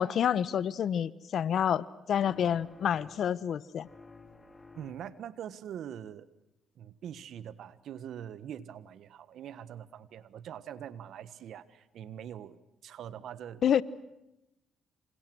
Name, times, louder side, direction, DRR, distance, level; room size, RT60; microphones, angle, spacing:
voice 1, 0.0-3.9 13.6-13.8, left 9 dB, 65° left, 19 dB, 1.0 m, -28 dB
sound 1, 2.1-3.5 3.8-5.3, left 3 dB, 20° left, 3.1 m, -54 dB
voice 2, 4.7-6.3 6.7-13.6, right 9 dB, 70° right, 16 dB, 1.5 m, -43 dB
28.0 x 27.5 x 6.3 m, 0.92 s
supercardioid pair, 65°, 0 cm